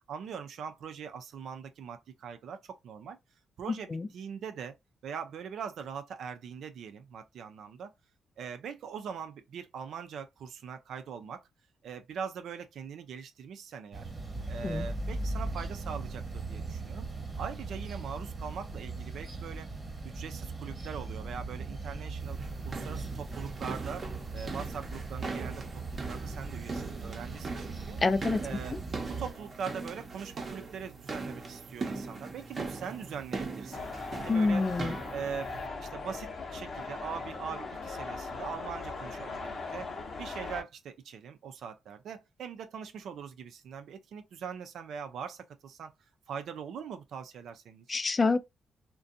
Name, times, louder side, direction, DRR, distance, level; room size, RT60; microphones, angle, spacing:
voice 1, 0.1-3.2 3.6-4.7 5.0-7.9 8.4-11.5 11.8-14.1 14.5-17.1 17.4-19.7 20.0-22.4 22.6-24.1 24.3-28.0 28.4-28.8 29.1-33.9 34.2-34.7 35.1-35.5 35.8-39.9 40.2-45.9 46.3-48.0, right 7 dB, 75° right, 0.4 m, -41 dB
sound 1, 13.9-29.3, right 3 dB, 30° right, 1.1 m, -39 dB
sound 2, 22.2-35.7, right 4 dB, 45° right, 0.7 m, -40 dB
voice 2, 28.0-28.5 34.3-35.0 47.9-48.4, left 3 dB, 35° left, 0.3 m, -27 dB
sound 3, 33.7-40.6, left 3 dB, 50° left, 0.7 m, -39 dB
2.5 x 2.2 x 2.6 m
cardioid pair, 75°, 0 cm